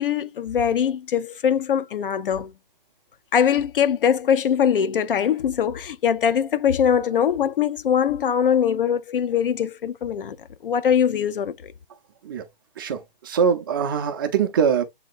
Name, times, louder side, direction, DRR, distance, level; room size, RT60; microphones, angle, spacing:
voice 1, 0.0-2.5 3.3-10.4 10.6-11.7, left 8 dB, 65° left, 0.6 m, -22 dB
voice 2, 12.8-14.8, right 7 dB, 25° right, 0.5 m, -23 dB
7.3 x 2.9 x 2.4 m
hypercardioid pair, 150°, 29 cm